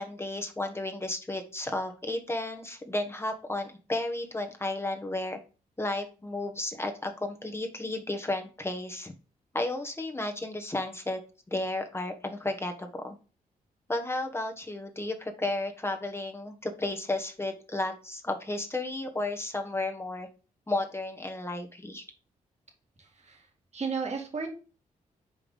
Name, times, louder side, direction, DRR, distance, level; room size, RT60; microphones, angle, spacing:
voice 1, 0.0-5.4 5.8-9.1 9.5-11.2 11.5-13.2 13.9-20.3 20.7-22.0, left 2 dB, 15° left, 4 dB, 1.3 m, -33 dB
voice 2, 23.0-23.5 23.7-24.5, right 5 dB, 45° right, 2 dB, 2.1 m, -34 dB
5.3 x 4.8 x 5.1 m, 0.35 s
cardioid pair, 65°, 15 cm